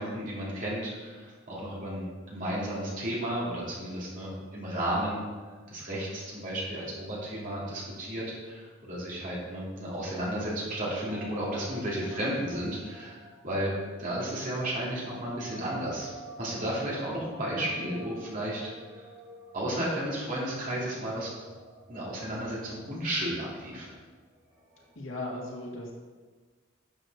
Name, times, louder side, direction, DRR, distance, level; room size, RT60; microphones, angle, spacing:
voice 1, 0.0-5.2 5.7-13.7 14.0-16.1 16.4-18.6 18.9-19.0 19.5-21.3 21.9-23.9, right 1 dB, 45° right, -6 dB, 3.3 m, -33 dB
sound 1, 11.1-24.9, right 1 dB, 15° right, 2.4 m, -50 dB
voice 2, 25.0-25.9, left 2 dB, 80° left, -2 dB, 2.4 m, -37 dB
11.5 x 7.3 x 4.1 m, 1.4 s
head